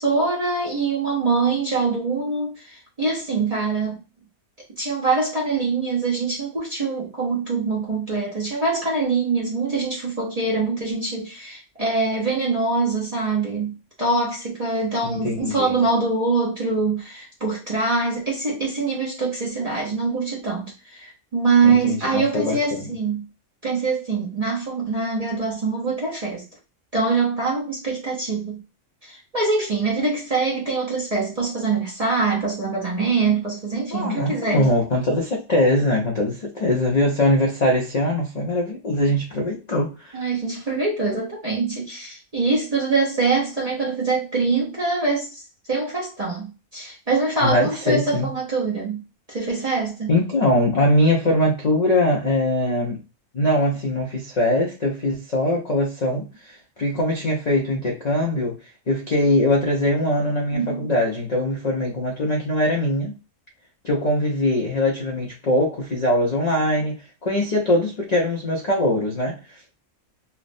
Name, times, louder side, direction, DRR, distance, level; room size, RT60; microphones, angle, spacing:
voice 1, 0.0-4.0 4.8-23.3 23.6-26.4 26.9-28.6 29.0-34.7 40.1-45.4 45.7-49.0 49.3-50.1 60.5-60.9, right 4 dB, 40° right, 0.6 m, -24 dB
voice 2, 15.0-15.8 21.6-22.9 33.9-40.2 47.4-48.3 50.1-53.0 53.3-58.6 58.9-63.1 63.8-69.6, left 1 dB, 65° left, 0.4 m, -22 dB
3.2 x 2.1 x 2.5 m
omnidirectional pair, 1.5 m